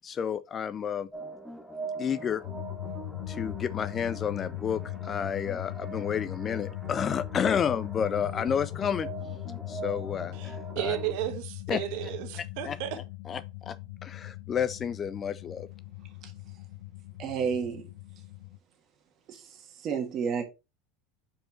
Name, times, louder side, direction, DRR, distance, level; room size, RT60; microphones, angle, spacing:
voice 1, 0.0-1.1 2.0-2.4 3.3-9.1 9.7-11.0 11.7-11.8 12.6-12.8 13.3-13.8 14.0-15.7, left 7 dB, 25° left, 0.3 m, -30 dB
sound 1, 1.1-11.1, right 3 dB, ahead, 0.8 m, -43 dB
sound 2, 2.4-18.6, left 18 dB, 65° left, 0.6 m, -40 dB
voice 2, 10.3-13.0, right 13 dB, 60° right, 1.2 m, -34 dB
voice 3, 17.2-17.8 19.3-20.4, right 6 dB, 35° right, 1.6 m, -31 dB
5.3 x 4.6 x 4.4 m
supercardioid pair, 150°, 0 cm